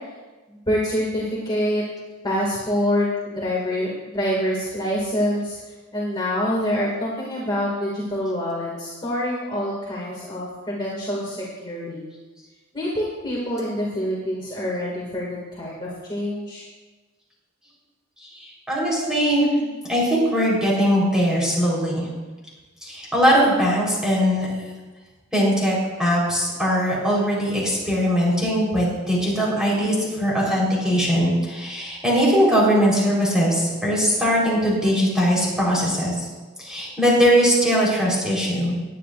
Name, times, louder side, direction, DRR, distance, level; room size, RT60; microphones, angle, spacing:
voice 1, 0.5-1.8 2.2-5.6 5.9-12.0 12.7-16.6, equal, 20° left, -6 dB, 2.2 m, -26 dB
voice 2, 18.2-22.1 22.8-24.5 25.3-36.2 36.6-38.7, equal, 5° right, -6 dB, 4.0 m, -20 dB
19.5 x 9.8 x 2.5 m, 1.3 s
head